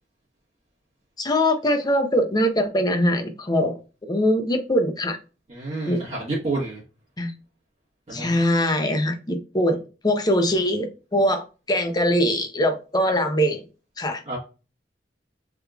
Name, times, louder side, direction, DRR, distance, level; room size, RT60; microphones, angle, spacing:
voice 1, 1.2-3.8 4.1-5.2 5.9-6.0 7.2-7.3 8.1-13.6 14.0-14.2, equal, 25° left, 5 dB, 0.7 m, -22 dB
voice 2, 5.5-6.8 8.1-8.4 14.3-14.4, right 2 dB, 35° right, -6 dB, 1.4 m, -29 dB
3.6 x 3.0 x 2.3 m, 0.32 s
head